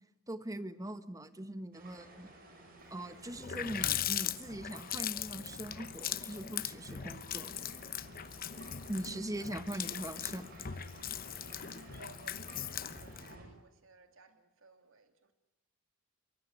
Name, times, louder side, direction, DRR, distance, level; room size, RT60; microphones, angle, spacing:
voice 1, 0.3-2.3 2.9-7.6 8.9-10.5, right 1 dB, 15° right, 11 dB, 1.2 m, -41 dB
sound 1, 1.7-13.4, right 1 dB, 45° right, 6.7 m, -54 dB
Water tap faucet, 2.9-3.0 3.3-13.4, left 10 dB, 45° left, 0.9 m, -39 dB
voice 2, 9.4-9.8 11.9-15.3, right 3 dB, 75° right, 6 dB, 2.7 m, -59 dB
23.5 x 23.5 x 9.6 m, 0.97 s
head